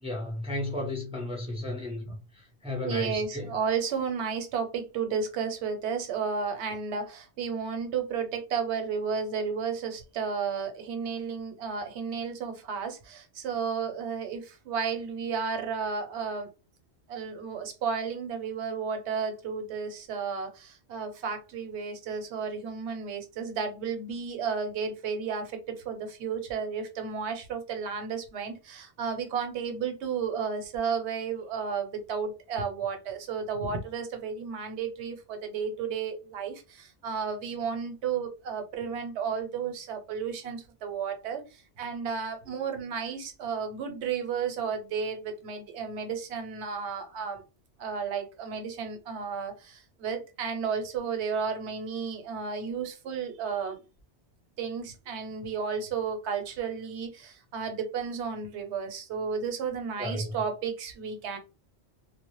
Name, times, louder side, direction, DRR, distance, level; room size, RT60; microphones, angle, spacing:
voice 1, 0.0-3.6 60.0-60.3, left 1 dB, 10° right, 0.4 m, -34 dB
voice 2, 2.8-16.5 17.1-47.5 47.8-53.8 54.6-61.4, right 6 dB, 85° right, 0.9 m, -33 dB
2.0 x 2.0 x 2.9 m
omnidirectional pair, 1.1 m